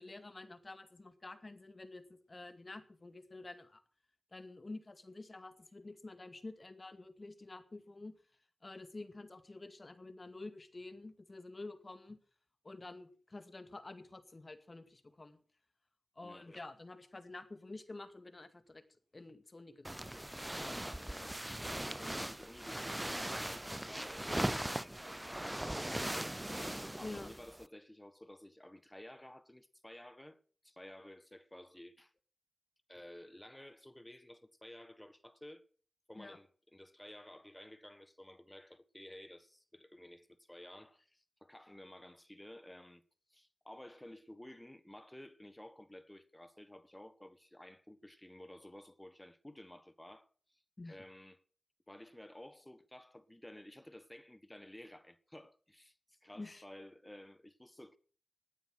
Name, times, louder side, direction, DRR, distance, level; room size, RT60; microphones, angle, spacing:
voice 1, 0.0-3.8 4.3-8.1 8.6-12.2 12.6-15.4 16.2-18.8 19.1-20.1 27.0-27.3 36.1-36.4 50.8-51.0 56.3-56.6, left 2 dB, 40° left, 2.1 m, -49 dB
sound 1, 19.8-27.7, right 1 dB, 10° right, 0.6 m, -39 dB
voice 2, 20.9-32.1 32.9-35.6 36.1-43.0 43.3-50.6 50.9-51.4 51.9-58.0, left 1 dB, 15° left, 1.4 m, -54 dB
16.5 x 9.2 x 6.3 m
cardioid pair, 40°, 0 cm